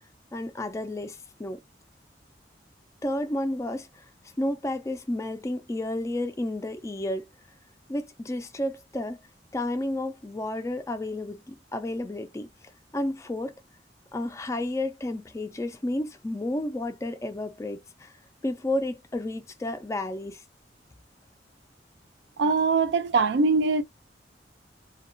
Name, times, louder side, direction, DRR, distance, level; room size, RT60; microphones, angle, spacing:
voice 1, 0.3-1.6 3.0-4.1 4.4-7.3 7.9-9.2 9.5-12.5 12.9-13.5 14.1-18.1 18.4-20.4, left 1 dB, 15° left, 0.3 m, -31 dB
voice 2, 22.4-23.8, right 4 dB, 80° right, 0.4 m, -22 dB
2.2 x 2.2 x 2.5 m
head